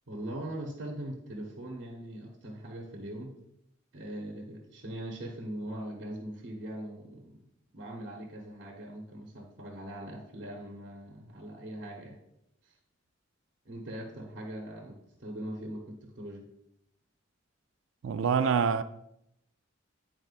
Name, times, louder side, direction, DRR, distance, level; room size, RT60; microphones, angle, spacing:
voice 1, 0.1-3.3 3.9-7.4 7.7-12.2 12.6-12.8 13.6-16.5, right 1 dB, 60° right, 0.8 m, -41 dB
voice 2, 18.0-18.8, right 6 dB, 80° right, 0.3 m, -25 dB
9.4 x 4.3 x 2.4 m
head